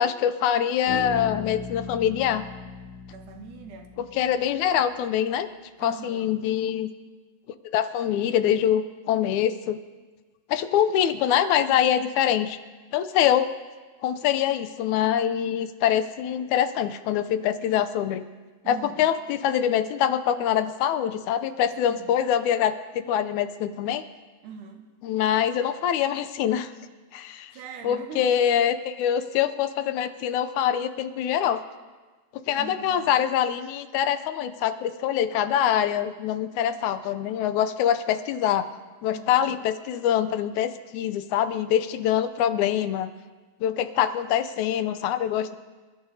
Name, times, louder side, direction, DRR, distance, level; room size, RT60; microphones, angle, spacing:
voice 1, 0.0-2.5 4.0-5.5 5.8-6.9 7.7-9.8 10.5-12.6 12.9-13.5 14.0-18.2 18.7-24.0 25.0-26.7 27.1-27.5 27.8-31.6 32.5-38.7 39.0-43.1 43.6-45.6, left 10 dB, 80° left, 11 dB, 2.0 m, -24 dB
Bass guitar, 0.9-4.6, left 3 dB, 30° left, 3.0 m, -38 dB
voice 2, 3.1-3.9 5.8-6.4 18.6-19.1 21.9-22.2 24.4-24.9 27.5-28.4 32.6-33.1 39.1-39.6 42.5-42.6, right 5 dB, 85° right, 4 dB, 2.7 m, -42 dB
27.5 x 12.5 x 2.8 m, 1.3 s
omnidirectional pair, 3.5 m